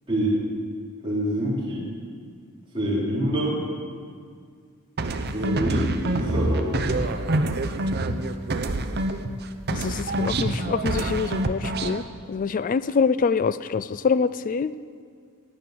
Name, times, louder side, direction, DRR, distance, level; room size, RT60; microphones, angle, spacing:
voice 1, 1.0-1.8 2.7-3.6 5.3-6.7, right 1 dB, 25° right, -8 dB, 3.7 m, -25 dB
sound 1, 5.0-9.4 9.7-12.0, right 2 dB, 45° right, 0.8 m, -26 dB
voice 2, 9.7-14.7, left 5 dB, 35° left, 14 dB, 0.3 m, -25 dB
18.5 x 9.3 x 6.8 m, 2.1 s
head